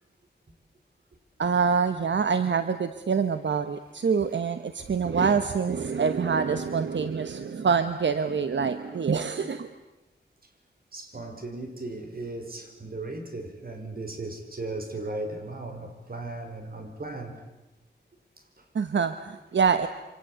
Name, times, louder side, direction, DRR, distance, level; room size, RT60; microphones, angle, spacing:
voice 1, 1.4-9.7 18.7-19.9, right 6 dB, 80° right, 10 dB, 1.2 m, -25 dB
voice 2, 10.9-17.5 18.4-18.7, right 2 dB, 55° right, 5 dB, 5.5 m, -37 dB
27.5 x 26.0 x 8.1 m, 1.0 s
wide cardioid pair, 75°, 18 cm